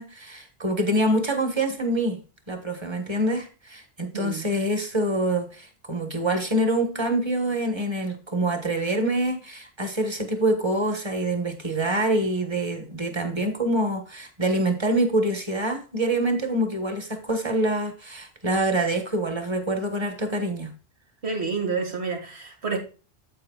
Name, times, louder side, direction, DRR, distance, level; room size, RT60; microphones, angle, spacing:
voice 1, 0.0-2.2 2.5-20.7, right 1 dB, 25° right, 1.4 m, -25 dB
voice 2, 4.1-4.5 21.2-22.8, right 4 dB, 85° right, 2.2 m, -29 dB
9.2 x 7.9 x 2.4 m
omnidirectional pair, 1.1 m